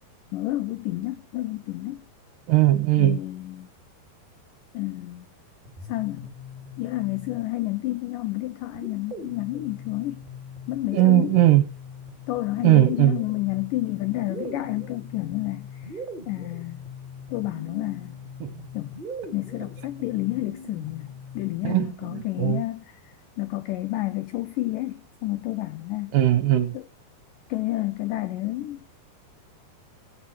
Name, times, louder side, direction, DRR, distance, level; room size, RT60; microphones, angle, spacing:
voice 1, 0.3-2.1 3.0-3.7 4.7-5.3 5.8-6.3 6.8-10.2 10.7-11.4 12.3-16.9 17.3-18.2 18.7-18.9 19.3-26.2 26.7-26.9 27.5-28.9, left 17 dB, 85° left, 1.9 m, -30 dB
voice 2, 2.5-3.2 10.9-11.6 12.6-13.2 18.4-18.5 21.6-22.6 26.1-26.7, right 14 dB, 70° right, 2.3 m, -19 dB
sound 1, 5.6-7.8 8.7-21.7, left 2 dB, 20° right, 1.2 m, -40 dB
16.5 x 6.2 x 6.0 m
omnidirectional pair, 4.7 m